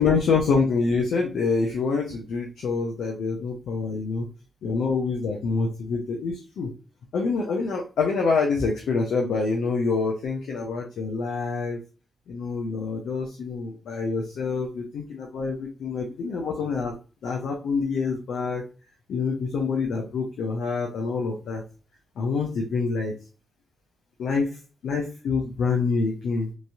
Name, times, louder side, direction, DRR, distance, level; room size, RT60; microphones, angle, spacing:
voice 1, 0.0-4.3 4.6-6.7 7.1-11.8 12.3-16.9 17.2-18.6 19.1-21.6 22.2-23.2 24.2-24.5 24.8-26.5, left 4 dB, 80° left, 0 dB, 0.5 m, -26 dB
3.0 x 2.6 x 2.3 m, 0.35 s
supercardioid pair, 45°, 0 cm